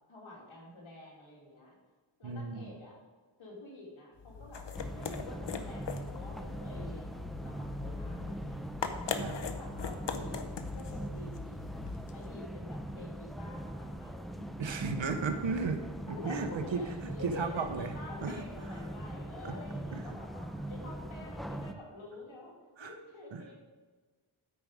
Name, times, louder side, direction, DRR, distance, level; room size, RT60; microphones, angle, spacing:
voice 1, 0.1-1.8 2.2-3.0 3.4-8.6 9.2-11.8 12.1-14.4 15.6-15.7 16.1-22.5 22.8-23.6, left 2 dB, 80° left, -3 dB, 2.7 m, -48 dB
voice 2, 2.2-2.7 9.1-9.4 14.6-15.8 16.2-17.9 18.2-18.4 19.4-19.5 19.9-20.0 22.8-23.0 23.3-23.4, right 4 dB, 70° right, 7 dB, 1.0 m, -34 dB
sound 1, 4.2-12.4, left 5 dB, 60° left, 0.9 m, -40 dB
sound 2, 4.7-21.7, right 1 dB, ahead, 0.6 m, -42 dB
12.5 x 5.2 x 4.9 m, 1.4 s
cardioid pair, 50°, 47 cm